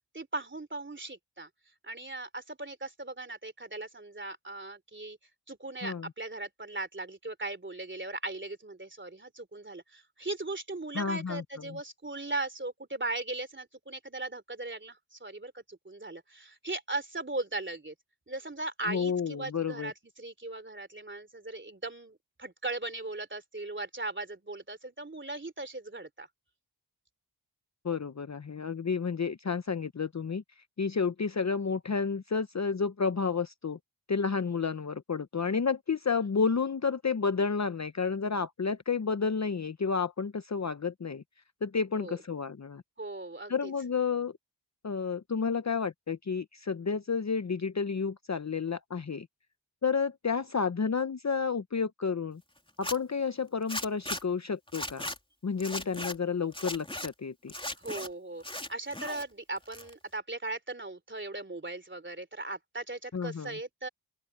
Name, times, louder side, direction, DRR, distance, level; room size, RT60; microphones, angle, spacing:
voice 1, 0.1-1.5 1.8-5.2 5.5-17.9 18.3-26.3 42.0-42.2 43.0-43.7 57.8-63.9, right 2 dB, 25° right, 3.4 m, -38 dB
voice 2, 10.9-11.8 18.9-19.9 27.8-30.4 30.8-33.8 34.1-41.2 41.6-42.8 43.5-44.3 44.8-49.3 49.8-52.4 52.8-55.1 55.4-57.5 63.1-63.5, left 5 dB, 35° left, 0.9 m, -31 dB
Zipper (clothing), 52.7-53.0 53.7-54.2 54.7-55.2 55.6-56.1 56.5-57.1 57.5-58.1 58.4-59.2 59.6-60.2, left 1 dB, 10° left, 3.3 m, -37 dB
open air
cardioid pair, 60°, 47 cm